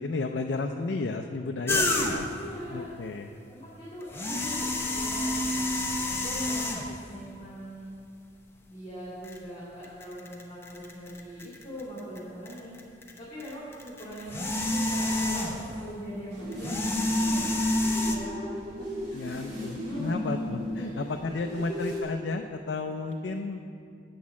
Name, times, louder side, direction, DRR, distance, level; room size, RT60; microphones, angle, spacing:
voice 1, 0.0-2.3 2.7-3.3 19.1-23.7, left 3 dB, 75° left, 4 dB, 0.4 m, -33 dB
sound 1, 1.7-2.4 4.0-7.1 7.9-8.0 9.2-9.4 9.8-12.2 12.5-15.8 16.5-18.2, left 1 dB, 15° left, 0.8 m, -29 dB
voice 2, 2.3-2.9 3.5-6.8 7.0-7.9 8.7-12.8 13.2-15.5 15.8-16.8 17.3-17.6 18.0-20.4 20.7-21.1 21.4-21.7, equal, 30° left, -8 dB, 2.3 m, -42 dB
sound 2, 16.3-22.0, equal, 70° right, 2.7 m, -36 dB
8.5 x 6.4 x 7.0 m, 2.5 s
head